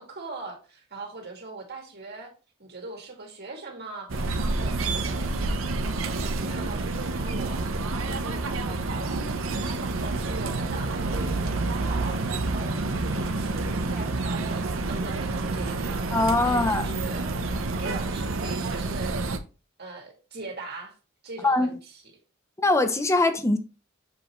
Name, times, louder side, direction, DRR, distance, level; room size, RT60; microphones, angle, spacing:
voice 1, 0.0-2.3 2.6-17.3 17.8-19.2 19.8-21.0 21.2-21.8, right 3 dB, 50° right, 2.3 m, -41 dB
sound 1, 4.1-19.4, right 3 dB, 70° right, 0.8 m, -28 dB
voice 2, 16.1-16.9 21.4-21.8 22.6-23.6, left 2 dB, 15° left, 0.7 m, -22 dB
7.1 x 5.2 x 3.2 m
head